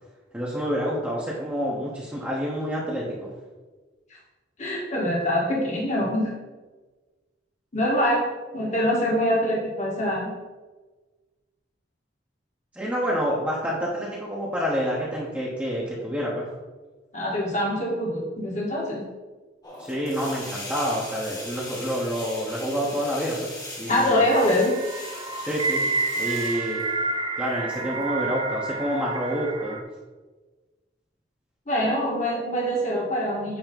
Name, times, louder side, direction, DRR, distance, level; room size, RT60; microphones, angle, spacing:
voice 1, 0.3-3.3 12.7-16.5 19.8-23.5 23.8-24.2 25.4-25.8 26.2-26.8 27.4-29.8, equal, 10° right, -7 dB, 1.2 m, -28 dB
voice 2, 4.6-6.3 7.7-8.3 8.5-10.4 17.1-19.0 23.9-24.8 31.7-33.6, equal, 40° left, -2 dB, 1.7 m, -24 dB
sound 1, 19.6-29.5, left 1 dB, 20° left, 1.5 m, -41 dB
sound 2, 24.0-29.8, right 3 dB, 25° right, 0.6 m, -29 dB
9.1 x 3.2 x 5.4 m, 1.3 s
head